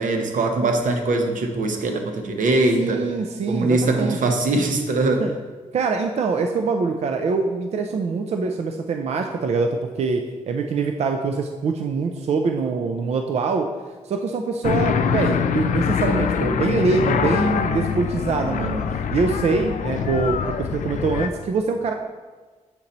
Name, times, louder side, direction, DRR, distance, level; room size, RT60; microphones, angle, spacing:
voice 1, 0.0-3.0 3.5-5.3, right 2 dB, 85° right, 4 dB, 0.8 m, -22 dB
voice 2, 2.8-4.4 5.2-5.3 5.7-13.7 14.0-21.9, right 4 dB, 55° right, 4 dB, 0.4 m, -24 dB
sound 1, 14.6-21.3, left 7 dB, 75° left, 0.4 m, -24 dB
7.2 x 4.2 x 3.9 m, 1.4 s
wide cardioid pair, 170°, 13 cm